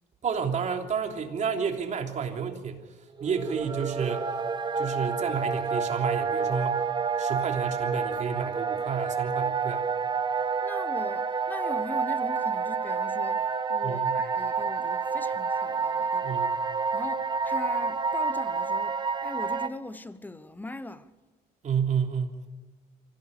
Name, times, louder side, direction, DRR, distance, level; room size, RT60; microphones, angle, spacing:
voice 1, 0.2-2.8 3.2-4.4 4.8-6.9 7.2-9.9 13.8-14.2 16.2-16.6 21.6-22.4, right 6 dB, 45° right, 3.2 m, -30 dB
sound 1, 3.2-19.7, right 5 dB, 25° right, 1.1 m, -29 dB
voice 2, 10.6-16.4 16.9-21.1, left 2 dB, 10° left, 1.2 m, -41 dB
25.5 x 16.5 x 6.7 m
cardioid pair, 110°, 17 cm